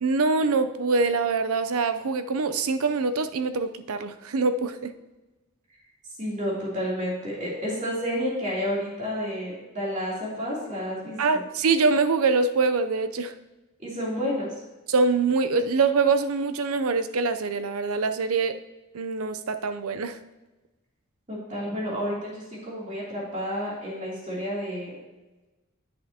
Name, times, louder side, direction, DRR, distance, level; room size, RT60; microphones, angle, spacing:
voice 1, 0.0-4.9 11.2-13.3 14.9-18.5 18.9-20.2, right 4 dB, 80° right, 10 dB, 0.6 m, -24 dB
voice 2, 6.2-11.4 13.8-14.5 21.3-24.9, equal, 35° right, -5 dB, 3.1 m, -30 dB
10.0 x 8.3 x 2.9 m, 1.1 s
head